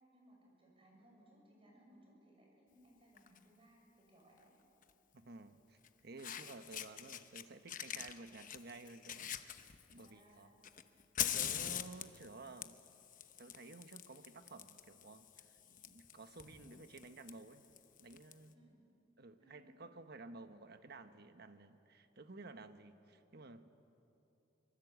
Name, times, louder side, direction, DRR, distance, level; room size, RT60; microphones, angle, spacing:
voice 1, 0.0-4.5 10.0-10.6 18.5-18.8 19.4-19.9, right 1 dB, 30° right, -1 dB, 6.8 m, -65 dB
Fire, 3.2-3.4 4.8-4.9 5.8-5.9 6.2-7.4 7.7-10.1 10.6-18.3, left 10 dB, 45° left, 1.0 m, -44 dB
voice 2, 5.1-10.5 11.2-12.8 13.4-15.5 15.9-17.7 18.0-18.5 19.2-23.7, right 3 dB, 55° right, 9 dB, 1.2 m, -54 dB
24.0 x 23.0 x 8.2 m, 2.9 s
head